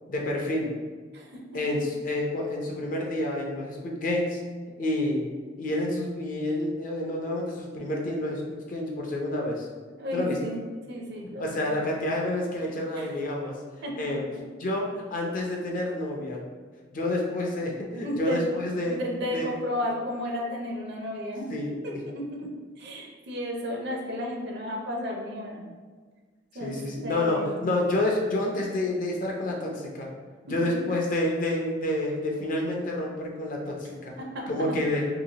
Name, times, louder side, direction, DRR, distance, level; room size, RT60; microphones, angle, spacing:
voice 1, 0.1-0.7 1.5-4.4 4.8-5.3 5.6-9.7 10.1-10.4 11.4-13.6 13.9-14.3 14.6-16.4 16.9-19.0 19.3-19.5 21.5-22.0 26.6-30.1 30.4-34.2 34.5-35.1, left 1 dB, 45° left, 0 dB, 0.5 m, -29 dB
voice 2, 10.0-10.6 10.9-11.8 12.9-13.1 13.8-14.2 18.0-21.5 21.8-22.5 22.8-25.7 26.5-26.8 27.0-27.6 30.5-30.8 34.2-34.8, left 1 dB, 60° right, 0 dB, 0.6 m, -33 dB
2.9 x 2.8 x 2.8 m, 1.5 s
head